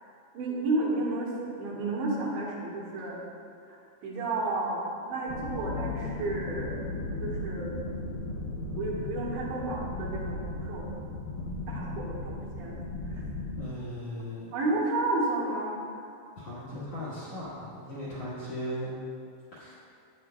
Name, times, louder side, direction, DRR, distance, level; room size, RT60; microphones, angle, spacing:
voice 1, 0.3-1.3 1.6-3.2 3.7-3.8 4.0-6.8 7.2-7.8 8.8-10.9 11.7-12.8 13.1-13.2 14.5-16.0, right 2 dB, 85° right, -5 dB, 3.6 m, -31 dB
sound 1, 5.3-13.7, left 2 dB, 80° left, 2.0 m, -36 dB
voice 2, 13.6-14.5 16.4-19.0 19.6-19.7, equal, 60° left, -9 dB, 1.7 m, -37 dB
10.5 x 8.6 x 2.3 m, 2.5 s
omnidirectional pair, 5.0 m